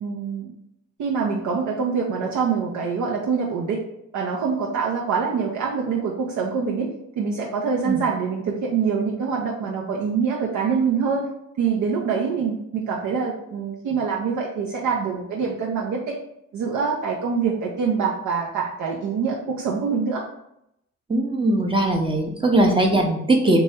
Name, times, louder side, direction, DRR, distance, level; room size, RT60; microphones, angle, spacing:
voice 1, 0.0-0.5 1.0-3.8 4.1-11.3 11.6-16.2 16.5-20.2, right 5 dB, 70° right, -2 dB, 0.6 m, -25 dB
voice 2, 21.1-23.6, right 1 dB, 15° right, 1 dB, 0.6 m, -20 dB
3.0 x 2.3 x 4.3 m, 0.79 s
cardioid pair, 90°, 30 cm